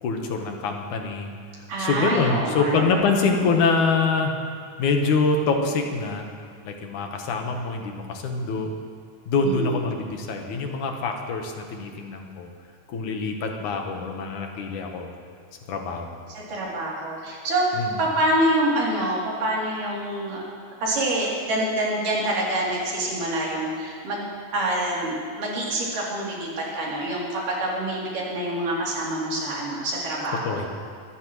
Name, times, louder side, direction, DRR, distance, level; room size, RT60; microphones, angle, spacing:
voice 1, 0.0-1.3 1.8-4.3 4.8-6.3 6.6-8.7 9.3-12.5 12.9-15.1 15.7-16.1 17.7-18.0 30.4-30.7, left 4 dB, 75° left, 3 dB, 2.6 m, -25 dB
voice 2, 1.7-3.0 9.4-9.8 16.3-17.7 18.0-20.4 20.8-24.2 24.5-30.7, right 1 dB, 80° right, -5 dB, 4.8 m, -26 dB
24.5 x 13.5 x 3.1 m, 2.2 s
omnidirectional pair, 3.7 m